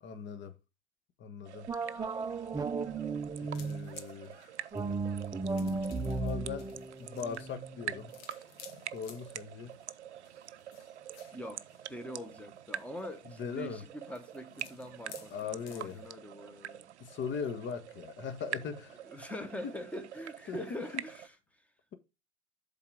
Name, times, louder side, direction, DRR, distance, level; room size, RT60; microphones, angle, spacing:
voice 1, 0.0-0.5 1.2-1.7 3.4-4.5 6.2-6.7 7.0-8.1 8.9-9.8 13.4-13.8 15.3-16.0 17.0-19.3 19.6-19.7 20.5-21.0, left 6 dB, 35° left, 1.3 m, -40 dB
sound 1, 1.5-21.3, right 11 dB, 85° right, 0.5 m, -46 dB
sound 2, 1.7-3.9 4.7-8.0, right 3 dB, 10° right, 0.6 m, -35 dB
sound 3, 3.5-16.1, left 8 dB, 60° left, 1.4 m, -57 dB
voice 2, 11.3-11.6 11.9-16.9 19.0-21.7, equal, 5° left, 1.3 m, -43 dB
7.1 x 4.0 x 6.3 m
figure-of-eight pair, 80°, 33 cm